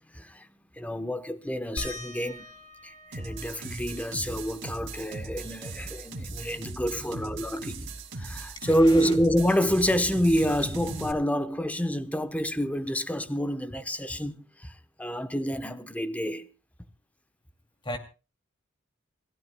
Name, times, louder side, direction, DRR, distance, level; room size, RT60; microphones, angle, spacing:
voice 1, 0.1-0.5 0.8-2.5 2.8-7.9 8.2-14.7 15.0-16.5, equal, 5° left, 0.9 m, -28 dB
sound 1, 1.8-6.9 7.2-7.3 7.7-9.4 10.7-10.8 11.5-11.6, left 1 dB, 75° left, 7.3 m, -46 dB
sound 2, 3.1-11.1, right 2 dB, 65° right, 2.1 m, -38 dB
voice 2, 6.5-7.5 8.6-9.1 17.8-18.0, left 1 dB, 25° left, 2.5 m, -40 dB
28.0 x 15.5 x 2.2 m
head